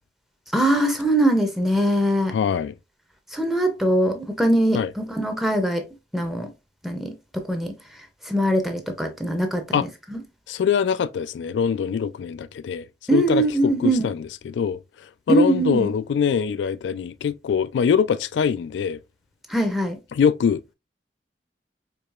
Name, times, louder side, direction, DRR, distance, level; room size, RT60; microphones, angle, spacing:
voice 1, 0.5-2.4 3.3-5.9 6.1-6.5 6.8-7.7 8.2-9.8 10.1-10.2 13.1-14.1 15.3-15.9 19.5-20.0, right 1 dB, ahead, 0.6 m, -22 dB
voice 2, 2.3-2.7 4.7-4.9 9.7-9.9 10.5-12.9 13.1-19.0 20.1-20.6, left 7 dB, 80° left, 0.3 m, -23 dB
4.7 x 2.8 x 2.4 m
head